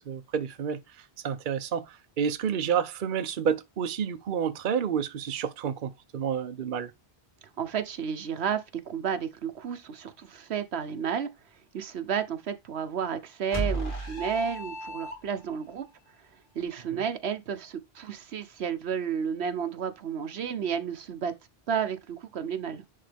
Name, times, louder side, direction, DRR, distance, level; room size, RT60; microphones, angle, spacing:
voice 1, 0.0-6.9 16.9-17.0, right 7 dB, 55° right, 0.8 m, -30 dB
voice 2, 7.6-11.3 11.7-15.9 16.5-21.3 21.7-22.8, right 7 dB, 80° right, 1.1 m, -32 dB
sound 1, 13.5-15.6, right 1 dB, 50° left, 2.4 m, -33 dB
10.0 x 3.8 x 3.4 m
omnidirectional pair, 1.1 m